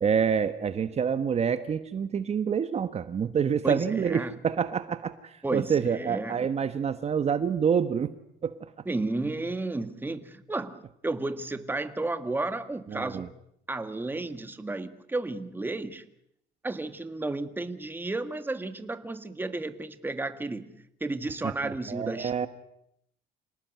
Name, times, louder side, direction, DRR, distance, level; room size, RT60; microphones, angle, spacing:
voice 1, 0.0-8.1 8.4-8.7 12.9-13.3 21.4-22.5, right 7 dB, 40° right, 11 dB, 1.4 m, -27 dB
voice 2, 3.6-4.4 5.4-6.4 8.9-13.3 13.7-16.1 16.6-22.5, right 2 dB, 10° right, 9 dB, 1.8 m, -33 dB
28.0 x 18.5 x 9.4 m, 0.75 s
cardioid pair, 110°, 17 cm